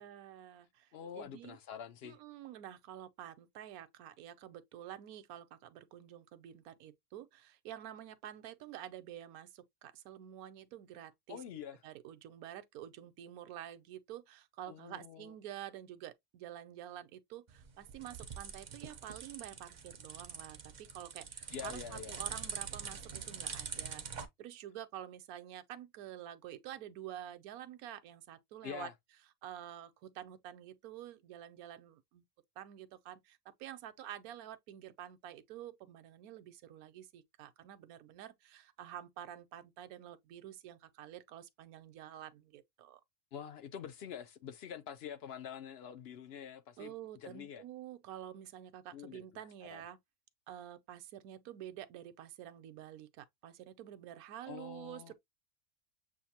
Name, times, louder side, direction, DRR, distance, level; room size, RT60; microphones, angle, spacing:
voice 1, 0.0-1.6 2.0-11.4 11.8-28.9 29.4-32.2 32.6-43.0 46.8-50.0 50.5-55.1, right 11 dB, 80° right, 1.1 m, -49 dB
voice 2, 0.9-2.2 11.3-11.8 14.7-15.3 21.5-22.2 28.6-28.9 43.3-47.6 48.9-49.3 49.6-49.8 54.5-55.1, left 8 dB, 60° left, 0.7 m, -46 dB
sound 1, 17.5-24.3, right 6 dB, 45° right, 0.6 m, -44 dB
7.1 x 2.5 x 2.7 m
omnidirectional pair, 1.5 m